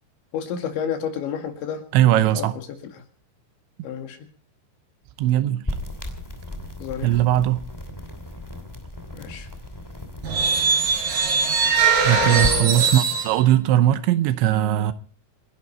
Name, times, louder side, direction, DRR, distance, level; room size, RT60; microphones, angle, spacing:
voice 1, 0.3-1.8 2.1-3.0 3.8-4.2 6.8-7.2 9.1-9.5 12.2-12.9, left 8 dB, 75° left, 4.4 m, -31 dB
voice 2, 1.9-2.5 5.2-5.6 7.0-7.6 11.9-14.9, right 13 dB, 80° right, 3.2 m, -19 dB
sound 1, 5.7-12.7, left 1 dB, 10° left, 1.1 m, -35 dB
sound 2, 10.2-13.4, right 5 dB, 50° right, 4.9 m, -21 dB
27.5 x 11.0 x 4.2 m
omnidirectional pair, 5.3 m